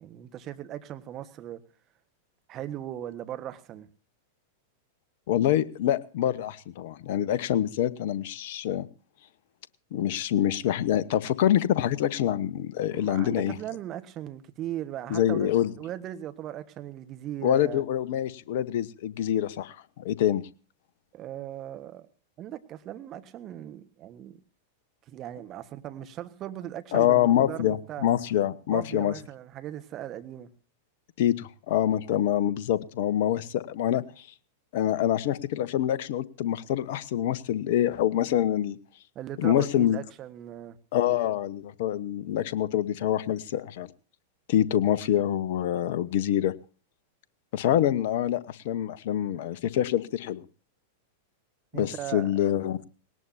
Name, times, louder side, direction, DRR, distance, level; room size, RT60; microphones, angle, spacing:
voice 1, 0.0-1.6 2.5-3.9 12.9-15.5 15.8-17.8 21.1-22.1 22.4-24.4 25.1-28.1 28.7-30.5 39.1-40.8 51.7-52.3, right 12 dB, 35° right, 1.4 m, -38 dB
voice 2, 5.3-8.9 9.9-13.6 15.1-15.7 17.4-20.4 26.9-29.1 31.2-34.3 34.7-38.8 39.4-40.0 40.9-43.9 44.5-46.5 47.5-50.4 51.7-52.8, left 11 dB, 60° left, 1.1 m, -26 dB
19.5 x 18.5 x 2.8 m
hypercardioid pair, 95°, 0 cm